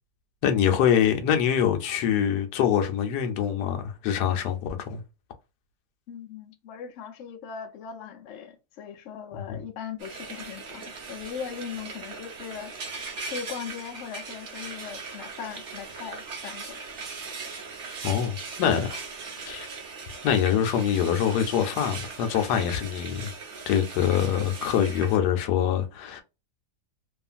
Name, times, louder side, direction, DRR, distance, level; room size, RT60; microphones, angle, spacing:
voice 1, 0.4-5.0 9.5-9.6 18.0-19.0 19.4-19.7 20.2-23.3 23.7-26.2, left 9 dB, 80° left, 1.2 m, -24 dB
voice 2, 6.1-12.7 13.2-16.8, left 7 dB, 65° left, 0.7 m, -39 dB
Frying (food), 10.0-25.2, right 4 dB, 55° right, 0.9 m, -39 dB
2.8 x 2.4 x 2.4 m
omnidirectional pair, 1.8 m